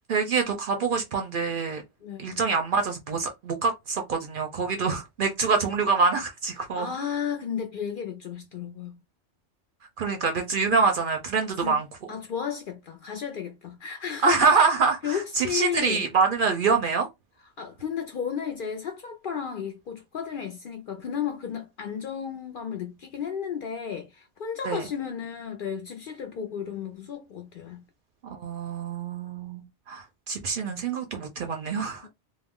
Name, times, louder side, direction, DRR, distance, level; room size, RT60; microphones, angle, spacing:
voice 1, 0.1-1.8 2.2-6.9 10.0-11.9 14.2-17.1 24.6-24.9 28.4-32.1, right 5 dB, 60° right, 0.6 m, -25 dB
voice 2, 2.0-2.4 6.8-9.0 11.4-11.8 12.1-14.7 15.0-16.0 17.6-27.8 32.0-32.1, left 7 dB, 60° left, 0.6 m, -33 dB
2.3 x 2.0 x 3.5 m
omnidirectional pair, 1.2 m